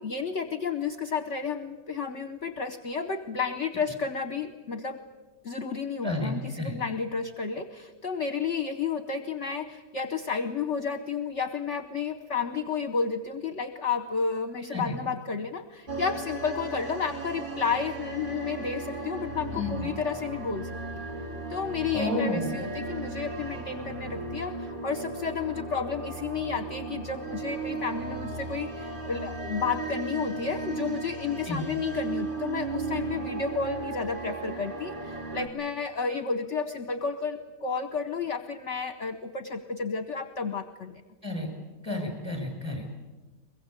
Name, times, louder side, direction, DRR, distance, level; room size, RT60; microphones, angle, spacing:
voice 1, 0.0-5.0 5.4-21.0 21.5-41.0, left 5 dB, 50° left, 9 dB, 1.2 m, -32 dB
voice 2, 6.0-6.8 14.7-15.0 19.5-19.7 21.9-22.5 31.5-31.6 41.2-41.5 41.8-43.0, left 2 dB, 15° right, 2 dB, 6.9 m, -31 dB
sound 1, 15.9-35.5, right 3 dB, 30° right, 3.2 m, -36 dB
23.0 x 22.5 x 8.3 m, 1.2 s
omnidirectional pair, 1.7 m